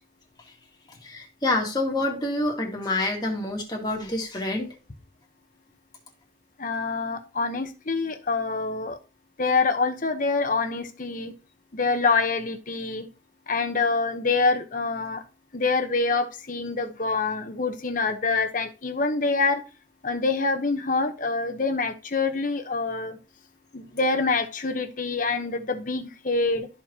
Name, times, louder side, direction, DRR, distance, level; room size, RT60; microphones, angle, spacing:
voice 1, 0.9-4.7, left 2 dB, 25° left, 1.9 m, -27 dB
voice 2, 6.6-9.0 9.4-11.3 11.7-13.0 13.5-15.2 15.5-19.6 20.0-23.2 23.7-26.7, left 3 dB, 45° left, 1.0 m, -26 dB
13.0 x 4.5 x 2.9 m
head